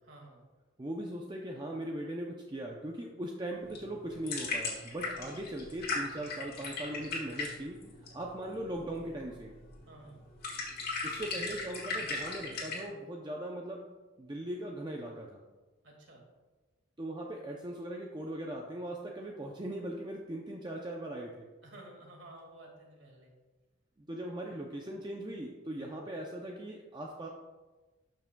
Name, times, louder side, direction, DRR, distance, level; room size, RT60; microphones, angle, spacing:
voice 1, 0.0-0.5 5.1-5.4 8.3-8.4 9.8-10.2 15.8-16.2 21.6-23.3 24.5-24.6 25.7-26.0, right 1 dB, 55° right, 0 dB, 2.0 m, -53 dB
voice 2, 0.8-7.8 8.1-9.6 11.0-13.9 14.2-15.4 17.0-21.5 24.0-27.3, right 1 dB, 20° right, -1 dB, 0.5 m, -39 dB
sound 1, 3.5-12.8, left 3 dB, 45° left, 1.8 m, -38 dB
12.5 x 6.0 x 2.2 m, 1.2 s
head